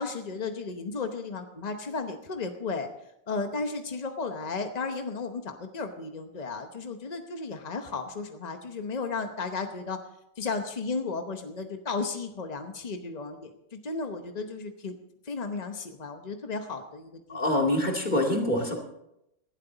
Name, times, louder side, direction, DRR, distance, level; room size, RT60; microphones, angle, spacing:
voice 1, 0.0-2.9 3.3-10.0 10.4-15.0 15.2-17.6, left 4 dB, 50° left, 6 dB, 0.5 m, -34 dB
voice 2, 17.3-18.8, left 1 dB, 25° left, 1 dB, 2.4 m, -25 dB
19.0 x 12.0 x 4.0 m, 0.81 s
omnidirectional pair, 2.1 m